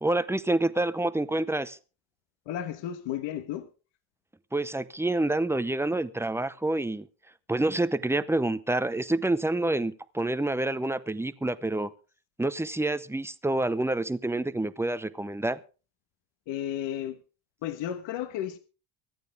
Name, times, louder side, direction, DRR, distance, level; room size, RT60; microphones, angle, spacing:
voice 1, 0.0-1.8 4.5-7.1 7.5-11.9 12.4-15.6, right 2 dB, 5° right, 0.7 m, -27 dB
voice 2, 2.5-3.7 16.5-17.2 17.6-18.6, left 11 dB, 65° left, 1.4 m, -33 dB
24.5 x 9.1 x 3.5 m
cardioid pair, 115°, 48 cm